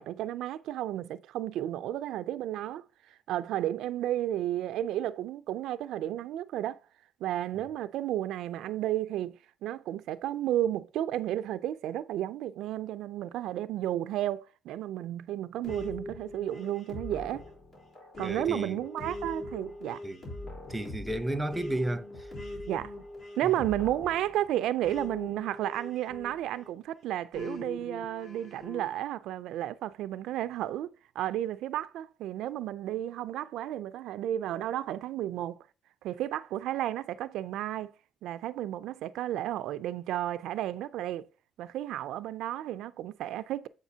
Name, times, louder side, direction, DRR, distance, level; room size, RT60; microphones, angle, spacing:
voice 1, 0.0-6.8 7.2-9.4 9.6-17.4 18.2-20.0 22.7-23.0 23.4-35.6 36.0-37.9 38.2-41.3 41.6-43.7, right 12 dB, 85° right, 0.3 m, -32 dB
sound 1, 15.6-26.7 27.3-28.9, left 1 dB, 60° left, 3.6 m, -42 dB
voice 2, 18.2-18.8 20.0-20.2 20.7-22.3 23.4-23.5, right 1 dB, 10° right, 0.7 m, -32 dB
8.0 x 4.9 x 2.7 m
cardioid pair, 90°, 0 cm